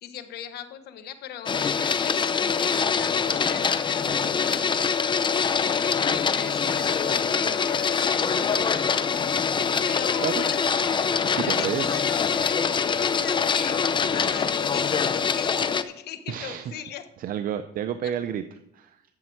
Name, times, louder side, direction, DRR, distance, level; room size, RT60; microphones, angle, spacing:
voice 1, 0.0-4.9 5.8-8.6 9.8-10.6 11.2-17.0, left 9 dB, 70° left, 9 dB, 1.2 m, -39 dB
Printer, 1.5-15.8, left 6 dB, 30° left, 0.6 m, -24 dB
voice 2, 11.3-11.9 16.3-16.7 17.2-18.4 18.7-19.0, right 10 dB, 55° right, 10 dB, 0.6 m, -30 dB
12.0 x 7.6 x 4.5 m, 0.81 s
cardioid pair, 110°, 17 cm